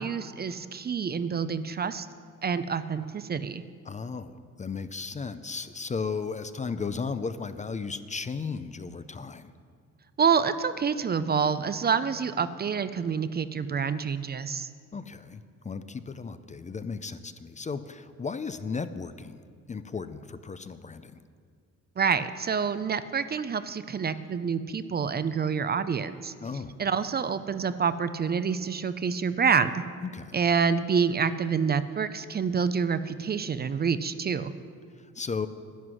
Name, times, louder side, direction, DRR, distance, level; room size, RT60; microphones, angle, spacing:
voice 1, 0.0-2.1 2.4-3.6 10.2-14.7 22.0-26.3 26.8-29.8 30.3-34.5, right 6 dB, 35° right, 13 dB, 0.5 m, -27 dB
voice 2, 3.9-9.5 14.9-19.4 19.7-21.2 26.4-26.7 30.0-30.4 35.0-35.5, left 5 dB, 25° left, 12 dB, 0.5 m, -35 dB
11.0 x 9.4 x 6.2 m, 2.1 s
cardioid pair, 90°, 30 cm